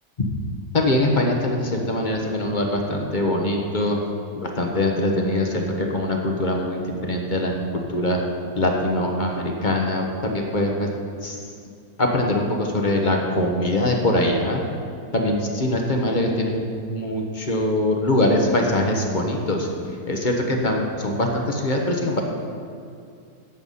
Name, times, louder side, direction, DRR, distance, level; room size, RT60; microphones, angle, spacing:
voice 1, 0.7-4.0 4.3-8.2 8.6-10.9 11.2-11.4 12.0-14.6 15.1-19.7 20.1-22.2, left 1 dB, 30° left, 1 dB, 1.1 m, -23 dB
11.0 x 8.0 x 5.6 m, 2.4 s
omnidirectional pair, 1.8 m